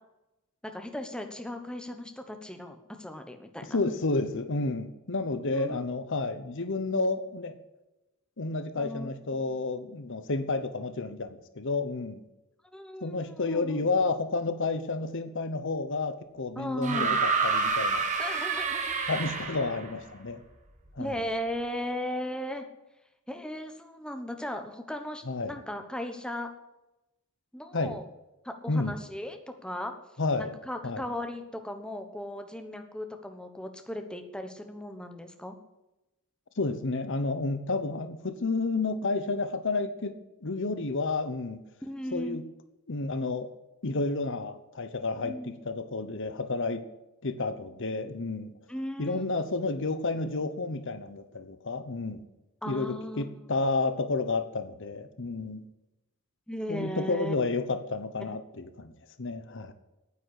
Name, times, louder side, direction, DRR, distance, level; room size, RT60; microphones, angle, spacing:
voice 1, 0.6-3.8 5.5-5.8 8.8-9.5 12.7-13.9 16.5-17.1 18.2-19.0 21.0-22.6 23.3-26.5 27.5-28.0 28.4-29.9 30.4-35.6 41.8-42.4 45.2-45.6 48.7-49.2 52.6-53.4 56.5-57.4 58.2-58.4, left 1 dB, 5° left, 6 dB, 1.1 m, -37 dB
voice 2, 3.7-7.6 8.4-12.2 13.0-18.0 19.1-20.4 21.0-21.2 25.3-25.6 27.7-28.0 28.7-29.0 30.2-30.6 30.8-31.0 36.6-40.2 40.4-41.6 42.1-42.4 42.9-43.5 43.8-46.8 47.2-48.5 49.0-52.3 52.7-55.7 56.7-58.9 59.2-59.7, left 3 dB, 60° left, 11 dB, 1.0 m, -31 dB
sound 1, 16.8-19.9 21.1-21.2, right 4 dB, 35° right, 1.9 m, -28 dB
9.6 x 9.1 x 9.7 m, 0.97 s
head